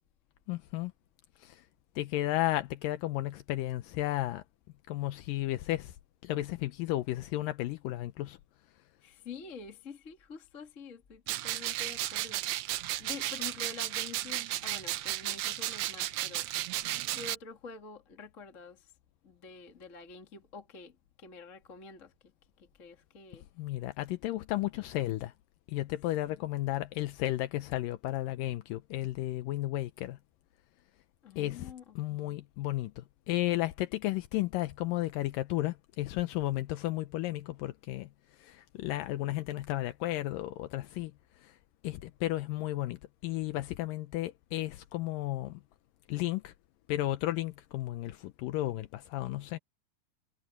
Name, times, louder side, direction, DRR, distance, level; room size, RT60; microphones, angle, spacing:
voice 1, 0.5-0.9 1.4-1.6 2.0-4.4 4.9-6.0 6.2-8.4 23.6-25.3 25.7-30.2 31.4-38.1 38.4-41.1 41.4-41.6 41.8-45.6 46.1-46.5 46.9-49.6, left 16 dB, 80° left, 2.4 m, -33 dB
voice 2, 9.0-16.5 17.1-18.9 19.2-22.1 22.6-23.5 26.3-26.4 31.2-32.4, left 5 dB, 25° left, 1.9 m, -47 dB
sound 1, 11.3-17.3, right 15 dB, 85° right, 1.5 m, -34 dB
omnidirectional pair, 3.9 m